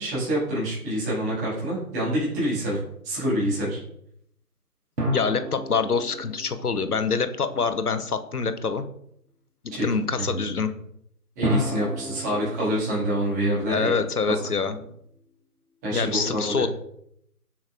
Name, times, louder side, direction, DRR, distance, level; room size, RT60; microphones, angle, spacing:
voice 1, 0.0-2.8 3.0-3.8 9.7-9.8 10.2-10.4 11.4-13.9 14.6-14.7 15.8-16.7, right 1 dB, 10° right, -9 dB, 1.9 m, -26 dB
sound 1, 5.0-7.8 11.4-14.8, equal, 85° right, 1.7 m, -33 dB
voice 2, 5.1-8.8 9.8-10.7 13.7-14.8 15.9-16.7, left 5 dB, 70° left, 10 dB, 0.8 m, -25 dB
7.1 x 5.8 x 2.4 m, 0.72 s
figure-of-eight pair, 150°, 47 cm